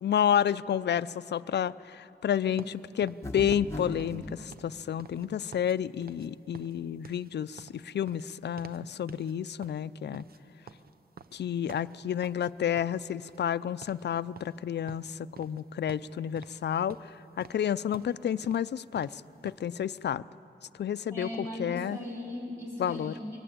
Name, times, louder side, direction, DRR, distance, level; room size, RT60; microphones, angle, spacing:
voice 1, 0.0-10.2 11.3-20.2 20.8-22.0 22.8-23.1, left 9 dB, 70° left, 16 dB, 0.4 m, -30 dB
sound 1, 2.6-5.8 6.0-6.3 6.5-8.8 9.1-9.3 9.6-12.5 12.8-13.6 13.8-14.1 14.3-15.6 15.9-16.6 16.9-19.7, right 6 dB, 55° right, 0.7 m, -50 dB
sound 2, 3.2-4.3, left 1 dB, 15° left, 1.4 m, -37 dB
voice 2, 21.1-23.4, left 1 dB, 15° right, -3 dB, 5.1 m, -38 dB
22.5 x 18.0 x 8.8 m, 2.8 s
wide cardioid pair, 135°, 18 cm